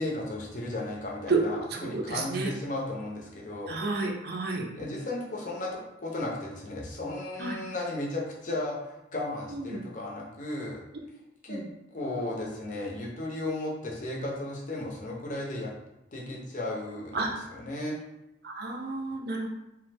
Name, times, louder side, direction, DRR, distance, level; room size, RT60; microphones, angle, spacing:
voice 1, 0.0-3.8 4.7-10.8 11.4-11.6 11.9-15.7 16.1-18.0, left 2 dB, 45° left, -3 dB, 0.6 m, -35 dB
voice 2, 1.7-2.5 3.7-4.7 7.4-7.6 9.5-9.8 11.5-11.6 17.1-17.3 18.4-19.5, right 3 dB, 60° right, 2 dB, 0.4 m, -31 dB
3.0 x 2.1 x 3.3 m, 0.90 s
head